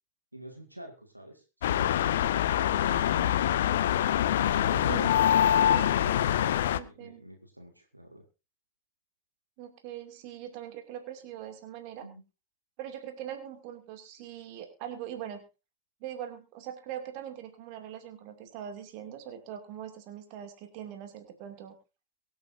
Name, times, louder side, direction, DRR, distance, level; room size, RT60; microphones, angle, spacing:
voice 1, 0.3-3.6 4.3-8.2 12.0-12.2, right 1 dB, 90° right, 3 dB, 2.2 m, -46 dB
sound 1, 1.6-6.8, left 10 dB, 60° left, 0.6 m, -25 dB
voice 2, 6.7-7.2 9.6-12.1 12.8-15.5 16.0-21.8, right 10 dB, 45° right, 6 dB, 2.6 m, -41 dB
23.5 x 8.8 x 2.7 m, 0.29 s
figure-of-eight pair, 90°, 0 cm